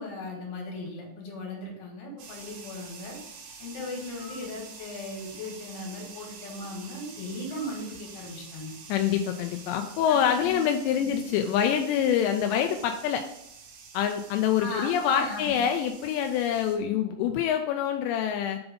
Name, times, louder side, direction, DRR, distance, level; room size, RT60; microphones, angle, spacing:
voice 1, 0.0-3.2 3.6-8.7 9.7-9.8 10.1-10.6 11.0-11.1 14.6-15.5, left 2 dB, 65° left, -2 dB, 3.9 m, -38 dB
sound 1, 2.2-16.8, right 5 dB, 70° right, 1.9 m, -47 dB
sound 2, 4.1-4.5 7.5-7.9, left 2 dB, 30° left, 1.9 m, -49 dB
voice 2, 8.9-13.2 13.9-18.6, left 9 dB, 85° left, 5 dB, 2.6 m, -26 dB
6.8 x 3.9 x 5.3 m, 0.83 s
omnidirectional pair, 5.4 m